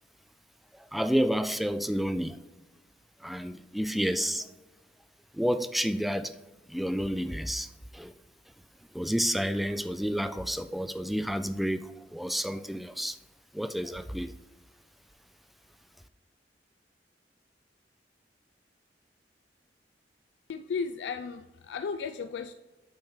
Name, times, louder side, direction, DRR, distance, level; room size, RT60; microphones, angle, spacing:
voice 1, 0.8-2.4 3.2-4.5 5.3-6.3 6.7-8.1 8.9-13.2 13.5-14.3, equal, ahead, 0.3 m, -30 dB
voice 2, 20.5-22.5, left 5 dB, 80° left, 0.3 m, -34 dB
8.8 x 4.3 x 3.6 m
head